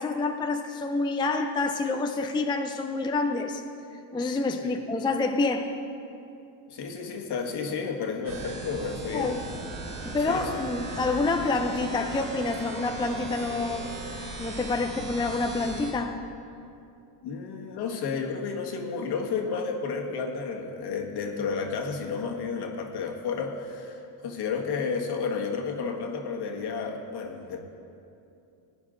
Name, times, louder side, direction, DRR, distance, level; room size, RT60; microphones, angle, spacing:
voice 1, 0.0-3.6 4.1-5.7 9.1-9.4 10.0-13.9 14.4-16.2, left 3 dB, 10° left, 4 dB, 0.5 m, -27 dB
voice 2, 6.7-9.3 10.3-10.5 17.2-27.6, left 5 dB, 55° left, 2 dB, 1.7 m, -32 dB
sound 1, 8.2-15.9, right 3 dB, 85° right, 2.3 m, -38 dB
18.0 x 9.6 x 3.8 m, 2.7 s
supercardioid pair, 95°, 46 cm